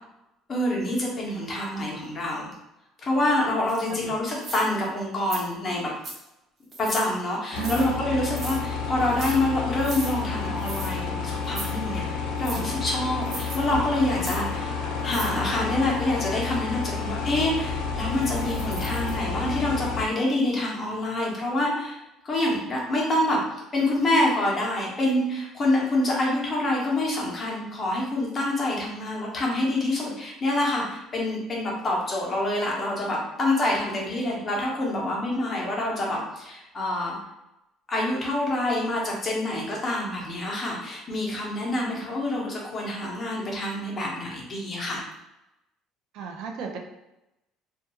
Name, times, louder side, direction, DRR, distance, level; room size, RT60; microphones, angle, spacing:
voice 1, 0.5-2.5 3.0-5.9 6.8-14.8 15.0-37.2 37.9-45.0, left 1 dB, 25° left, -3 dB, 0.7 m, -26 dB
sound 1, 3.7-3.8 4.4-4.9 5.3-5.4 6.0-6.3 6.7-7.1 7.6-7.9 8.3-8.6 9.0-9.4 9.8-10.1 10.6-10.9 11.4-11.7 12.4-12.6 13.3-13.6 14.2-14.4 15.1-15.4 18.2-19.1, right 2 dB, 30° right, 0.6 m, -37 dB
sound 2, 7.5-20.1, left 5 dB, 90° left, 0.4 m, -30 dB
voice 2, 7.5-8.0 12.5-12.7 46.1-46.8, right 6 dB, 65° right, 2 dB, 0.4 m, -32 dB
2.3 x 2.2 x 2.8 m, 0.92 s
cardioid pair, 155°, 0 cm